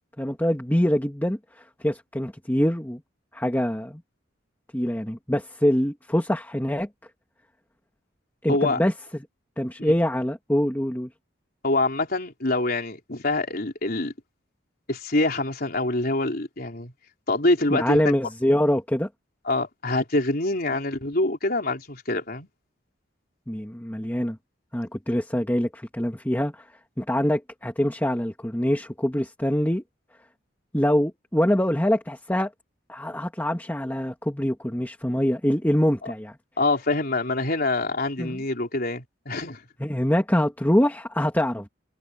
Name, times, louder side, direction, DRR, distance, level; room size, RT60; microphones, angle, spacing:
voice 1, 0.2-3.0 3.3-4.0 4.7-6.9 8.4-8.9 9.6-11.1 17.7-19.1 23.5-24.4 24.7-26.6 27.0-29.8 30.7-32.5 32.9-36.4 38.2-38.4 39.8-41.7, equal, 10° left, 1.8 m, -24 dB
voice 2, 8.5-8.8 11.6-14.1 14.9-16.9 17.3-18.1 19.5-22.5 36.6-39.6, left 2 dB, 50° left, 4.0 m, -25 dB
head